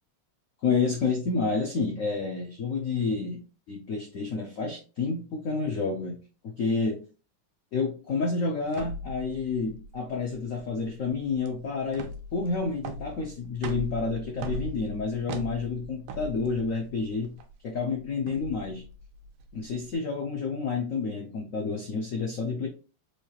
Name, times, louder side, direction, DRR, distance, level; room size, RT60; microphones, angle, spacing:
voice 1, 0.6-3.4 3.7-6.2 6.4-7.0 7.7-17.3 17.6-18.8 19.5-22.7, left 4 dB, 90° left, 0.7 m, -29 dB
sound 1, 8.7-19.9, right 1 dB, 85° right, 1.5 m, -40 dB
4.7 x 2.3 x 2.8 m
omnidirectional pair, 2.3 m